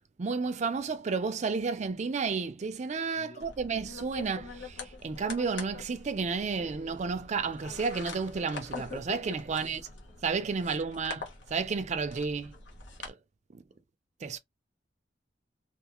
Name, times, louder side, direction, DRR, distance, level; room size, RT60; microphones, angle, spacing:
voice 1, 0.2-9.8 10.2-12.6 13.0-13.2 13.5-13.6 14.2-14.4, right 5 dB, 40° right, 0.4 m, -32 dB
voice 2, 3.2-3.6 9.5-10.0 10.7-10.8, left 2 dB, 45° left, 0.5 m, -54 dB
sound 1, 3.4-13.1, left 4 dB, 75° left, 0.9 m, -44 dB
2.4 x 2.3 x 2.9 m
head